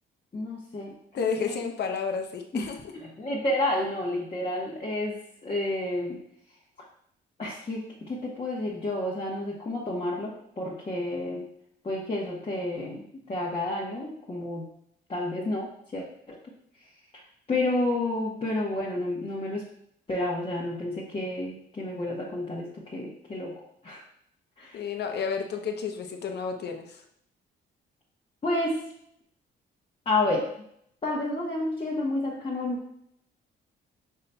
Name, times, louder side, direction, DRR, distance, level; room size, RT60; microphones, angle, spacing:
voice 1, 0.3-0.9 1.4-1.6 2.5-2.6 2.9-6.2 7.4-11.5 11.8-13.0 13.3-14.7 15.1-16.4 17.5-19.6 20.1-24.0 24.6-24.8 28.4-28.8 30.1-30.5 31.0-32.8, left 2 dB, 30° left, -5 dB, 0.9 m, -30 dB
voice 2, 1.1-2.8 24.7-27.0, left 5 dB, 55° left, 4 dB, 0.7 m, -31 dB
5.5 x 3.9 x 2.2 m, 0.72 s
cardioid pair, 90°, 20 cm